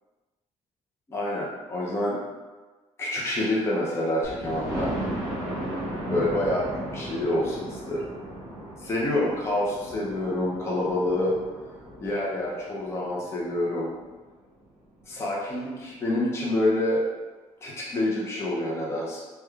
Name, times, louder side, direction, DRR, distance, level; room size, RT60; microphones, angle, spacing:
voice 1, 1.1-2.2 3.0-5.1 6.1-8.0 8.8-11.3 12.0-13.9 15.1-17.0 17.6-19.2, left 1 dB, 20° left, -5 dB, 0.6 m, -27 dB
Thunder, 4.2-14.0 14.5-14.6 15.0-15.1 15.4-15.5, right 1 dB, 30° right, 1.4 m, -36 dB
3.4 x 2.2 x 3.3 m, 1.3 s
cardioid pair, 155°, 12 cm